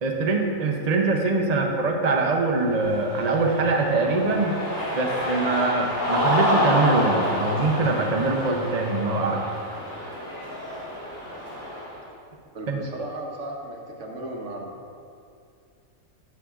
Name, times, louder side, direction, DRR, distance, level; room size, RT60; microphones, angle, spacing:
voice 1, 0.0-4.6 4.9-9.4 12.7-12.8, right 3 dB, 40° right, 1 dB, 0.7 m, -23 dB
Cheering, 2.7-12.0, equal, 70° left, 2.5 m, -28 dB
voice 2, 12.5-14.7, right 1 dB, 60° right, -1 dB, 1.4 m, -35 dB
12.0 x 8.3 x 2.5 m, 2.4 s
omnidirectional pair, 1.4 m